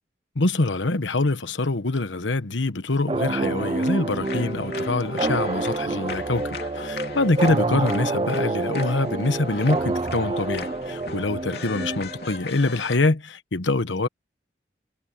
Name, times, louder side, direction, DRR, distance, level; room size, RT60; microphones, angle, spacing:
voice 1, 0.4-14.1, left 2 dB, 85° left, 1.2 m, -25 dB
sound 1, 3.1-12.5, right 2 dB, 25° right, 0.4 m, -28 dB
sound 2, 3.6-13.0, left 4 dB, 55° left, 3.0 m, -38 dB
head